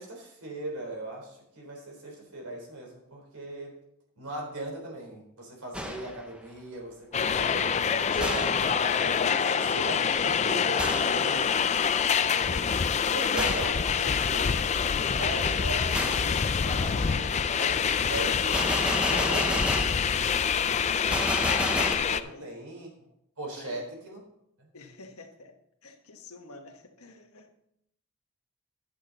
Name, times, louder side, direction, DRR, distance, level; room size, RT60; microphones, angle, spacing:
voice 1, 0.0-3.8 4.2-7.7 8.1-11.4 11.9-12.7 13.1-14.6 15.1-19.9 22.0-22.9 23.4-24.2 24.6-24.7, right 1 dB, 80° right, 0 dB, 3.8 m, -39 dB
Gunshot gunfire, 5.7-6.3 8.2-8.7 10.8-11.3 13.4-13.8 15.9-16.3 18.5-20.1 21.1-22.0, equal, 5° right, 0.7 m, -31 dB
sound 1, 7.1-22.2, left 7 dB, 30° left, 0.3 m, -26 dB
voice 2, 24.7-25.5 25.8-27.6, left 3 dB, 75° left, 4 dB, 1.3 m, -50 dB
11.0 x 8.3 x 4.0 m, 0.75 s
head